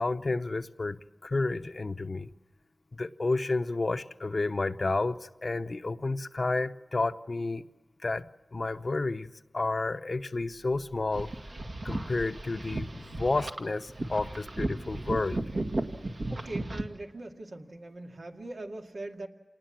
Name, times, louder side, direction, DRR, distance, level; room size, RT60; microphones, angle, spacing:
voice 1, 0.0-2.3 2.9-7.6 8.0-8.3 8.5-11.3 11.8-15.4, left 3 dB, 60° left, 10 dB, 0.8 m, -31 dB
sound 1, 11.1-16.8, right 2 dB, 70° right, 2.0 m, -35 dB
voice 2, 16.3-19.3, right 2 dB, 90° right, 1 dB, 2.1 m, -41 dB
27.5 x 19.5 x 7.6 m, 1.2 s
wide cardioid pair, 55°, 0 cm